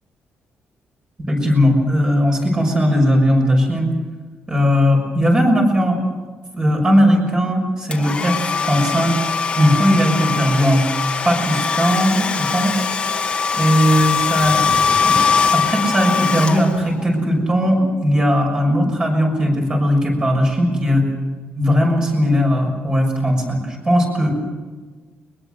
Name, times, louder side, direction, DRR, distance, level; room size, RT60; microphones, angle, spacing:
voice 1, 1.3-3.9 4.5-6.0 6.5-8.4 8.7-9.2 9.5-10.9 11.2-12.8 13.5-14.7 15.0-15.2 15.5-21.0 21.6-24.4, equal, 25° right, 1 dB, 6.2 m, -17 dB
Domestic sounds home sounds, 7.9-17.1, left 5 dB, 30° left, 2.1 m, -21 dB
22.5 x 21.5 x 6.7 m, 1.4 s
cardioid pair, 180°, 4 cm